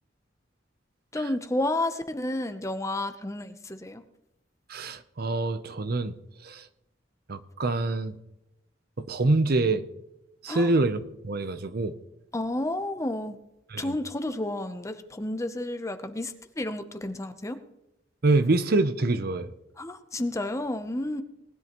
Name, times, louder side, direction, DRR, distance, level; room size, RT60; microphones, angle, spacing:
voice 1, 1.1-4.0 10.5-10.7 12.3-13.4 13.8-17.6 19.8-21.2, left 1 dB, 15° left, 9 dB, 0.7 m, -31 dB
voice 2, 4.7-6.1 6.4-6.6 7.3-8.2 9.0-9.8 10.4-11.9 13.7-13.9 18.2-19.5, right 2 dB, 50° right, 12 dB, 0.7 m, -25 dB
19.5 x 10.5 x 3.0 m, 0.86 s
head